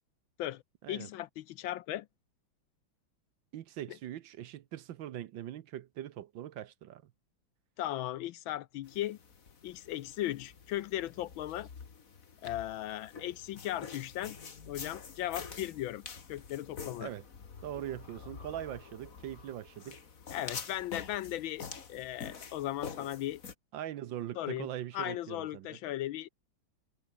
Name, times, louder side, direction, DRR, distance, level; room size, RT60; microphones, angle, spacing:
voice 1, 0.9-2.1 7.8-9.2 9.6-11.7 12.4-14.4 14.7-16.0 16.3-17.1 20.3-23.4 24.3-24.7 24.9-26.3, left 14 dB, 75° left, 1.4 m, -37 dB
voice 2, 3.5-7.1 17.0-17.2 17.6-20.0 23.7-25.8, right 11 dB, 65° right, 1.5 m, -41 dB
sound 1, 8.8-23.5, left 6 dB, 40° left, 2.1 m, -47 dB
omnidirectional pair, 2.3 m